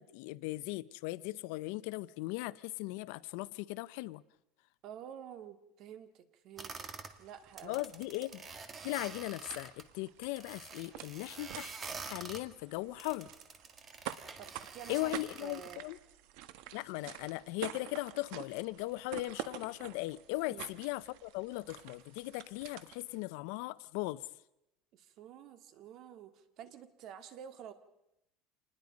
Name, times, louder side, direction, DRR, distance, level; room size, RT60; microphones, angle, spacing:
voice 1, 0.0-4.2 7.6-8.4 8.8-11.7 12.1-13.3 14.9-16.0 16.7-24.2, left 20 dB, 75° left, 17 dB, 0.7 m, -38 dB
voice 2, 4.8-7.9 14.4-15.8 20.5-20.7 24.9-27.7, right 9 dB, 50° right, 10 dB, 2.0 m, -50 dB
sound 1, 6.6-7.1 7.5-9.8 10.2-12.4 13.0-15.8, right 4 dB, 25° right, 1.8 m, -47 dB
sound 2, 6.7-23.2, right 13 dB, 70° right, 1.3 m, -49 dB
27.0 x 20.5 x 5.2 m, 0.86 s
cardioid pair, 150°, 0 cm